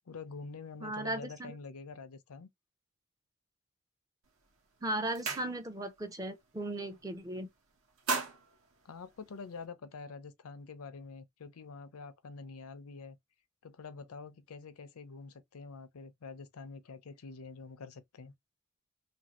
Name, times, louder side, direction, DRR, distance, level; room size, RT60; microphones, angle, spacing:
voice 1, 0.1-2.5 8.8-13.2 13.6-18.3, left 4 dB, 90° left, 0.5 m, -46 dB
voice 2, 0.8-1.5 4.8-7.5, right 1 dB, 15° right, 0.4 m, -37 dB
sound 1, 4.3-4.5 4.8-6.0 6.3-6.6 6.9-7.5 7.8-9.7, right 4 dB, 75° right, 1.0 m, -38 dB
2.8 x 2.6 x 2.9 m
head